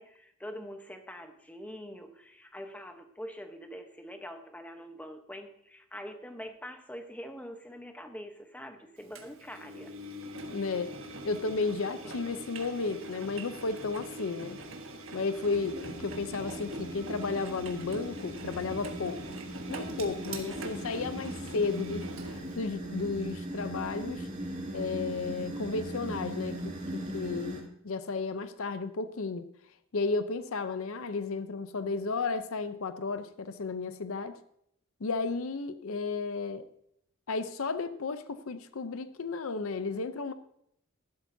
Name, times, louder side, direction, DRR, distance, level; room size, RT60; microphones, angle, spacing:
voice 1, 0.0-9.9 12.0-12.1 20.4-20.9, equal, 5° left, 6 dB, 0.9 m, -44 dB
Engine, 9.1-22.6, right 1 dB, 65° right, 1.4 m, -43 dB
voice 2, 10.5-10.9 11.2-14.6 15.1-19.2 19.7-24.3 24.7-29.5 29.9-34.4 35.0-36.6 37.3-40.3, left 4 dB, 70° left, 11 dB, 0.6 m, -33 dB
sound 1, 15.4-27.6, right 1 dB, 35° right, 2.2 m, -39 dB
14.5 x 12.0 x 2.7 m, 0.72 s
head